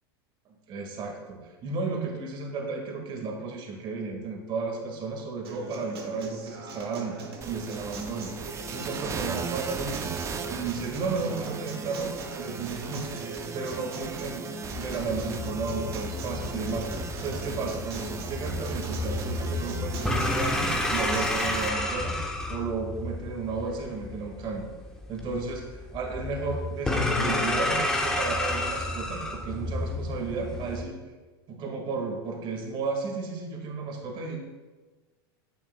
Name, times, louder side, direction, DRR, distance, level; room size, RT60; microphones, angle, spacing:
voice 1, 0.7-7.2 7.4-8.3 8.7-10.2 10.5-22.2 22.5-24.7 25.1-31.0 31.5-34.4, right 4 dB, 40° right, 2 dB, 1.8 m, -33 dB
Acoustic guitar, 5.4-21.5, right 3 dB, 80° right, 1.5 m, -40 dB
sound 1, 7.4-21.7, right 5 dB, 20° right, 0.6 m, -38 dB
sound 2, 14.7-30.8, left 2 dB, 5° left, 1.1 m, -31 dB
9.9 x 9.6 x 2.2 m, 1.3 s
hypercardioid pair, 110°, 13 cm